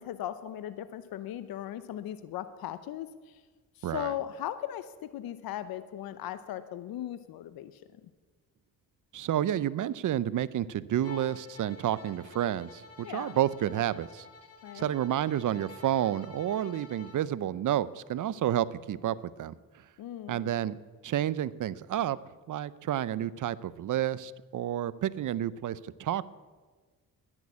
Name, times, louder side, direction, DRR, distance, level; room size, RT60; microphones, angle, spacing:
voice 1, 0.0-3.1 3.8-7.7 13.0-13.4 14.6-14.9 20.0-20.5, left 12 dB, 80° left, 13 dB, 0.7 m, -38 dB
voice 2, 3.8-4.1 9.1-14.3 14.7-19.5 20.3-20.8 21.0-22.2 22.5-26.2, right 11 dB, 60° right, 19 dB, 0.6 m, -30 dB
Bowed string instrument, 11.0-17.3, left 4 dB, 40° left, 1.7 m, -50 dB
11.0 x 10.5 x 8.3 m, 1.4 s
cardioid pair, 75°, 35 cm